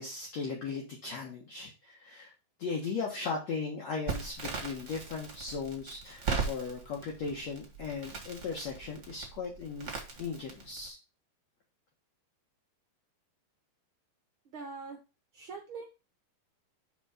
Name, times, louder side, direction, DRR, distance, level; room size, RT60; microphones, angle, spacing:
voice 1, 0.0-2.3 2.6-9.9 10.2-11.0, left 5 dB, 55° left, -1 dB, 2.3 m, -37 dB
Crackle, 4.1-10.9, right 5 dB, 30° right, 1.4 m, -39 dB
voice 2, 14.4-15.0 15.3-15.9, right 4 dB, 70° right, 2 dB, 1.2 m, -42 dB
6.2 x 5.3 x 5.0 m, 0.29 s
omnidirectional pair, 4.4 m